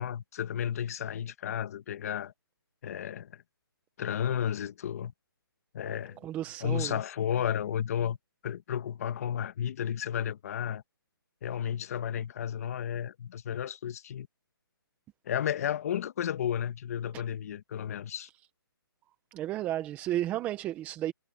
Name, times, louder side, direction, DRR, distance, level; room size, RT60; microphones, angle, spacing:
voice 1, 0.0-2.3 2.8-3.4 4.0-5.1 5.7-6.2 6.6-8.2 8.4-10.8 11.4-14.3 15.2-18.3, left 9 dB, 40° left, 1.4 m, -32 dB
voice 2, 6.2-7.0 19.3-21.1, right 13 dB, 10° right, 0.9 m, -33 dB
hypercardioid pair, 165°, 12 cm